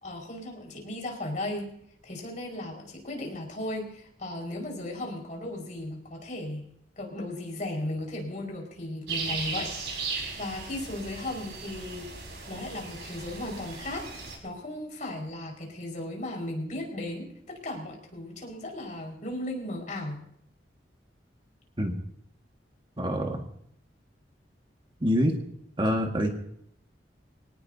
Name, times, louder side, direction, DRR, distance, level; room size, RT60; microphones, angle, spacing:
voice 1, 0.0-1.7 2.0-6.6 7.0-10.1 10.3-12.1 12.5-14.1 14.4-20.2, left 1 dB, 45° left, 0 dB, 5.1 m, -36 dB
sound 1, 9.1-14.4, right 4 dB, 70° right, 4.6 m, -37 dB
voice 2, 23.0-23.4 25.0-25.4 25.8-26.3, equal, 30° right, 2 dB, 1.8 m, -25 dB
24.0 x 18.5 x 2.8 m, 0.69 s
head